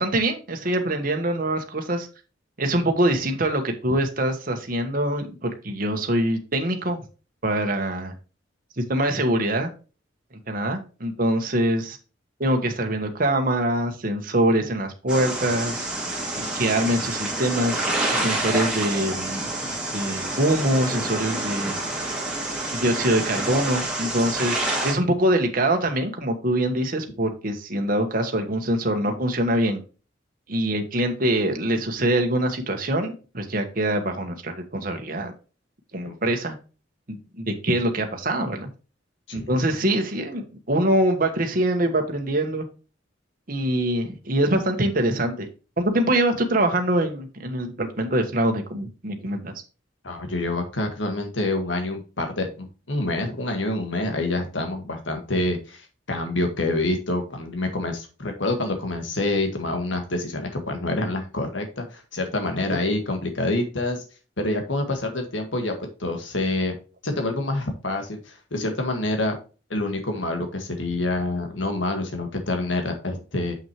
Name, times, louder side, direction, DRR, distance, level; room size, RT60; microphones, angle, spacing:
voice 1, 0.0-2.1 2.6-7.0 7.4-8.1 8.8-9.7 10.5-12.0 12.4-15.8 16.4-21.7 22.7-29.8 30.5-35.3 35.9-36.5 37.1-38.7 39.3-42.6 43.5-45.5 45.8-49.6, right 1 dB, 50° right, 4 dB, 1.4 m, -24 dB
sound 1, 15.1-24.9, right 2 dB, 5° right, 2.4 m, -28 dB
voice 2, 39.3-39.6 50.0-64.0 64.4-65.7 66.0-66.8 67.0-69.4 69.7-73.6, left 2 dB, 85° left, 5 dB, 1.7 m, -27 dB
7.4 x 6.1 x 3.0 m, 0.33 s
head